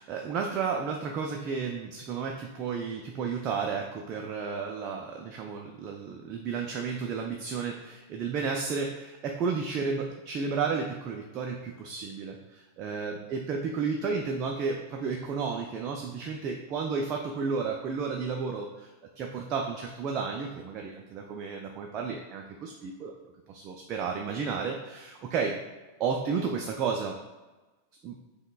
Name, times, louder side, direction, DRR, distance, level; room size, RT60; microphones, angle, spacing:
voice 1, 0.0-18.9 19.2-23.1 23.5-25.6 26.0-27.2 28.0-28.2, right 5 dB, 35° right, 1 dB, 0.3 m, -32 dB
4.9 x 2.1 x 2.3 m, 1.2 s
figure-of-eight pair, 90°, 0 cm